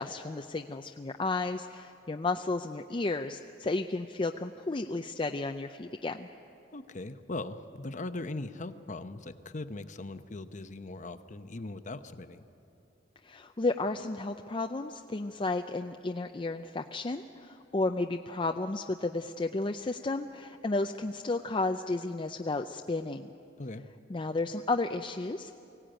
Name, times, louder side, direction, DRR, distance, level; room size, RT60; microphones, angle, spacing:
voice 1, 0.0-6.3 13.2-23.3 24.1-25.5, left 2 dB, 30° left, 5 dB, 0.5 m, -33 dB
voice 2, 6.7-12.4 23.6-23.8, left 2 dB, 45° left, 10 dB, 0.9 m, -40 dB
23.5 x 17.0 x 9.0 m, 2.7 s
head